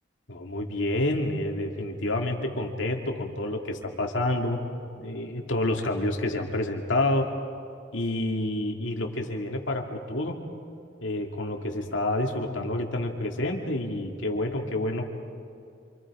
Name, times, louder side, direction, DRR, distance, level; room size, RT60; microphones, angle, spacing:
voice 1, 0.3-4.6 5.0-7.3 7.9-10.3 11.0-15.0, left 1 dB, 85° left, 2 dB, 2.5 m, -28 dB
28.0 x 26.5 x 5.0 m, 2.5 s
head